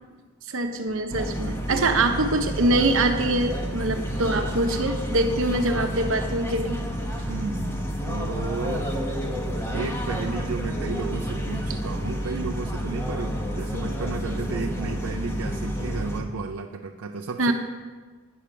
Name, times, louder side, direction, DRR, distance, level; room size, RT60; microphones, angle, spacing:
voice 1, 0.5-6.8 17.4-17.5, right 2 dB, 65° right, 6 dB, 0.9 m, -24 dB
sound 1, 1.1-16.2, equal, 10° left, 0.9 m, -30 dB
voice 2, 1.7-2.1 7.2-9.2 9.7-17.5, right 4 dB, 80° right, 3 dB, 0.5 m, -33 dB
9.5 x 6.8 x 5.9 m, 1.4 s
head